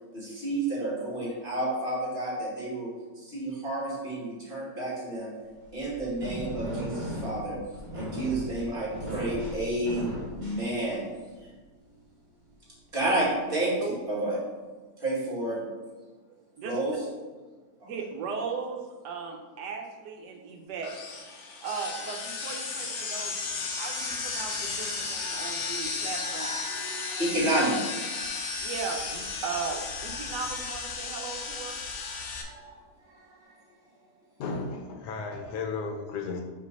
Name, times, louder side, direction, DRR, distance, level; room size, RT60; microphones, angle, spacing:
voice 1, 0.1-5.3 5.7-7.6 7.9-11.1 11.4-11.5 12.9-13.8 14.1-14.4 15.0-15.6 16.6-17.0 17.8-17.9 25.1-25.8 26.2-28.3 32.0-33.6, right 1 dB, 30° right, -6 dB, 2.1 m, -31 dB
sound 1, 5.6-11.3, equal, 45° right, 2.2 m, -37 dB
voice 2, 17.9-20.9 21.6-26.5 28.6-31.8, right 5 dB, 80° right, 2 dB, 1.3 m, -37 dB
sound 2, 20.8-32.4, left 4 dB, 55° left, 0.9 m, -34 dB
voice 3, 34.4-36.4, left 4 dB, 75° left, 4 dB, 1.3 m, -34 dB
5.4 x 3.3 x 5.3 m, 1.4 s
omnidirectional pair, 1.9 m